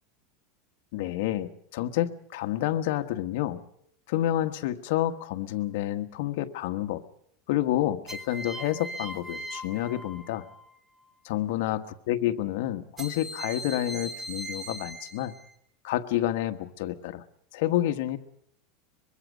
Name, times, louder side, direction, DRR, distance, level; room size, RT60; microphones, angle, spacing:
voice 1, 0.9-3.6 4.1-7.0 7.5-10.5 11.3-15.3 15.8-17.2 17.5-18.2, left 13 dB, 60° left, 8 dB, 1.4 m, -29 dB
sound 1, 5.0-5.5 8.1-10.7 13.0-15.5, right 1 dB, 15° right, 1.9 m, -40 dB
24.0 x 22.5 x 5.2 m, 0.71 s
supercardioid pair, 165°, 0 cm